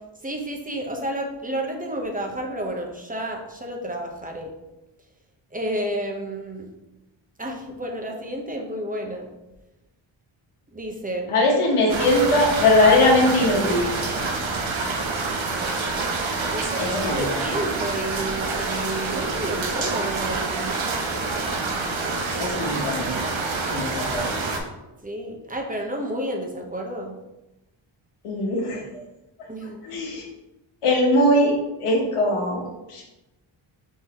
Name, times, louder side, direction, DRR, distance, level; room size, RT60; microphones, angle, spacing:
voice 1, 0.2-4.5 5.5-6.7 7.4-9.2 10.7-11.3 16.5-20.7 25.0-27.1 29.5-29.8, right 1 dB, 15° right, 1 dB, 0.9 m, -31 dB
voice 2, 11.3-13.9 16.8-17.4 22.4-23.3 23.7-24.3 28.2-29.0 29.8-30.2 30.8-33.0, left 1 dB, 85° left, -1 dB, 1.2 m, -21 dB
sound 1, 11.9-24.6, right 3 dB, 65° right, 0.8 m, -27 dB
5.7 x 3.0 x 2.9 m, 0.99 s
cardioid pair, 65°, 50 cm